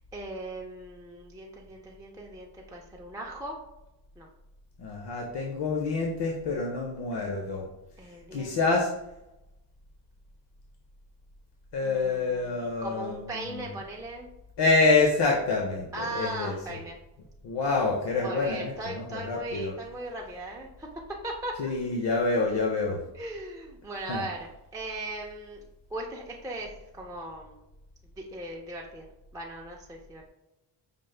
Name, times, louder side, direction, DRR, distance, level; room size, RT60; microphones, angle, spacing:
voice 1, 0.1-3.6 4.2-4.3 8.0-8.6 11.8-14.3 15.9-17.0 18.2-20.9 21.2-21.7 23.1-25.6 25.9-27.6 28.2-29.1 29.3-30.3, right 1 dB, 10° right, -2 dB, 0.3 m, -38 dB
voice 2, 4.8-7.7 8.3-8.9 11.7-13.7 14.6-16.8 17.4-19.7 21.6-23.0 24.1-24.3, left 3 dB, 65° left, 0 dB, 0.6 m, -27 dB
5.1 x 2.1 x 3.2 m, 0.91 s
wide cardioid pair, 125°, 44 cm